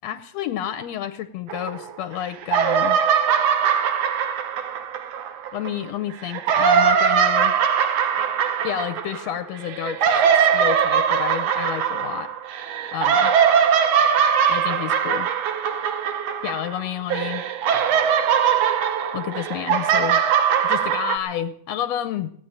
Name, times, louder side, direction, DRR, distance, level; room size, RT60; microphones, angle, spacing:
voice 1, 0.0-3.0 5.5-7.5 8.6-10.2 10.5-12.3 12.9-13.3 14.5-15.3 16.4-17.4 19.1-20.2 20.6-22.3, left 11 dB, 75° left, 11 dB, 1.6 m, -30 dB
sound 1, 1.5-2.1 2.4-5.7 6.2-16.8 17.1-21.2, right 7 dB, 60° right, 2.0 m, -21 dB
17.5 x 9.2 x 8.8 m, 0.69 s
omnidirectional pair, 3.7 m